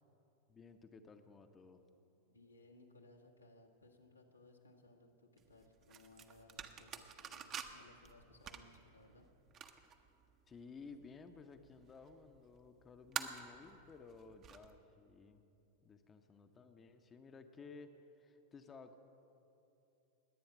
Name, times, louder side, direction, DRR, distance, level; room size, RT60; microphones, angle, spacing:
voice 1, 0.5-1.8 10.5-15.5 15.8-17.9 18.2-19.0, left 4 dB, 20° left, 7 dB, 0.8 m, -56 dB
voice 2, 2.2-9.3, left 2 dB, 85° left, -1 dB, 1.5 m, -63 dB
sound 1, 5.4-14.8, right 8 dB, 30° right, 0.9 m, -50 dB
21.0 x 8.7 x 6.0 m, 2.8 s
figure-of-eight pair, 90°, 0 cm